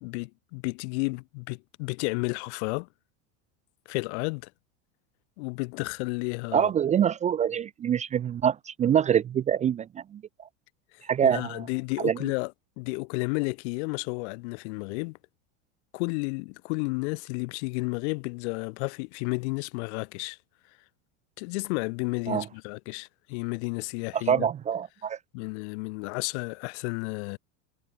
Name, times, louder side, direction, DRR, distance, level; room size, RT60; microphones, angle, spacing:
voice 1, 0.0-2.9 3.9-4.5 5.4-6.7 11.2-12.5 12.8-15.2 15.9-20.4 21.4-24.5 25.3-27.4, left 30 dB, 60° left, 2.5 m, -32 dB
voice 2, 6.5-9.9 10.1-10.2 11.1-11.7 12.0-12.2 22.3-22.4 24.1-25.2, right 9 dB, 20° right, 0.6 m, -25 dB
supercardioid pair, 145°, 37 cm